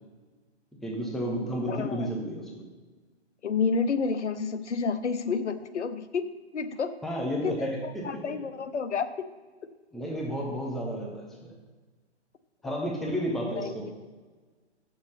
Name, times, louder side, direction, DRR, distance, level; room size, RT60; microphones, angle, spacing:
voice 1, 0.8-2.7 7.0-8.2 9.9-11.5 12.6-13.9, equal, ahead, -2 dB, 0.7 m, -32 dB
voice 2, 1.7-2.1 3.4-6.2 6.5-6.9 7.4-9.1 13.6-13.7, left 5 dB, 85° left, 12 dB, 0.9 m, -30 dB
8.1 x 6.6 x 5.7 m, 1.3 s
hypercardioid pair, 145°, 34 cm